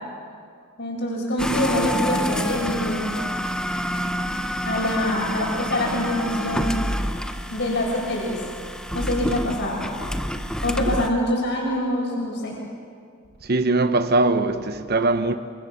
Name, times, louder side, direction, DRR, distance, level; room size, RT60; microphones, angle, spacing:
voice 1, 0.8-3.1 4.6-6.8 7.5-8.4 8.9-9.9 10.6-12.6, left 1 dB, 55° left, 7.6 m, -25 dB
sound 1, 1.4-11.1, equal, 5° left, 1.1 m, -28 dB
voice 2, 13.4-15.4, right 2 dB, 50° right, 1.0 m, -21 dB
30.0 x 27.5 x 7.2 m
head